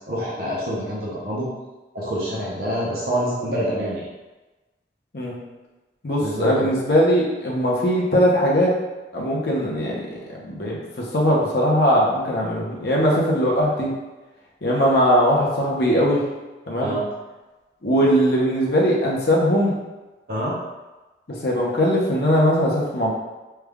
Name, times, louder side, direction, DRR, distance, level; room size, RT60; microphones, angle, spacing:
voice 1, 0.1-1.5 1.9-4.1 6.2-6.7 16.8-17.1 20.3-20.6, equal, 55° right, -7 dB, 0.7 m, -26 dB
voice 2, 6.0-8.7 9.1-10.0 10.5-13.9 14.6-16.2 16.7-17.0 17.8-19.8 21.3-23.1, equal, 60° left, -4 dB, 0.8 m, -20 dB
3.3 x 2.4 x 3.4 m, 1.2 s
head